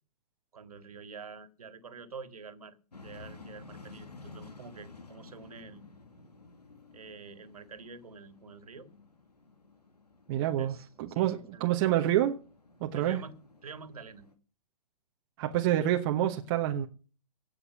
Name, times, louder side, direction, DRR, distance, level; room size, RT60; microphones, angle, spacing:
voice 1, 0.5-2.8 3.0-5.9 6.9-8.9 10.6-11.7 12.9-14.3, right 4 dB, 70° right, 2.2 m, -47 dB
sound 1, 2.9-14.3, left 3 dB, 85° left, 2.4 m, -53 dB
voice 2, 10.3-12.4 12.8-13.2 15.4-16.9, right 12 dB, 35° right, 1.3 m, -28 dB
17.0 x 6.7 x 7.4 m
figure-of-eight pair, 125°, 20 cm